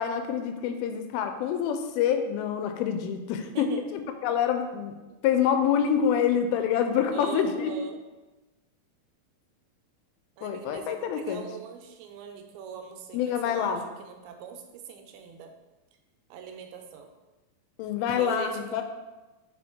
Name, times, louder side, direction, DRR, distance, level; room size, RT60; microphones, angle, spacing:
voice 1, 0.0-4.9 5.2-7.7 10.4-11.4 13.1-13.9 17.8-18.8, left 8 dB, 85° left, 7 dB, 2.5 m, -26 dB
voice 2, 3.5-3.8 5.1-5.2 7.1-8.0 10.4-15.5 16.3-17.1 18.0-18.8, right 7 dB, 85° right, 4 dB, 2.6 m, -41 dB
6.9 x 4.5 x 3.6 m, 1.1 s
omnidirectional pair, 4.4 m